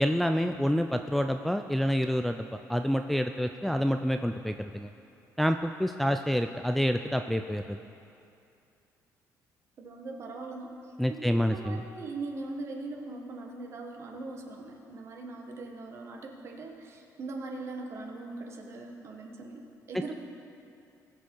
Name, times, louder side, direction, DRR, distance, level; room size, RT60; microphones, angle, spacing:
voice 1, 0.0-4.9 5.4-7.8 11.0-11.8, equal, ahead, 6 dB, 0.3 m, -28 dB
voice 2, 9.8-10.8 11.1-20.1, right 3 dB, 45° right, 2 dB, 1.4 m, -40 dB
19.5 x 7.1 x 4.5 m, 2.6 s
cardioid pair, 140°, 7 cm